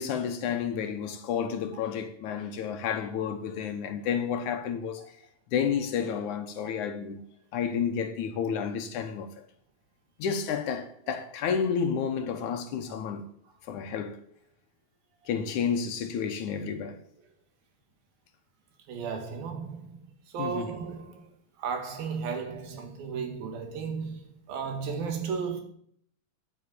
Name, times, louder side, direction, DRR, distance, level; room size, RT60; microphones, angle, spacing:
voice 1, 0.0-5.0 5.5-7.2 7.5-9.3 10.2-13.2 13.7-14.2 15.3-17.0 20.4-20.7, left 7 dB, 65° left, 2.3 m, -30 dB
voice 2, 18.9-20.0 20.3-21.3 21.6-25.6, right 6 dB, 80° right, 3.9 m, -34 dB
10.0 x 9.3 x 8.5 m
omnidirectional pair, 4.1 m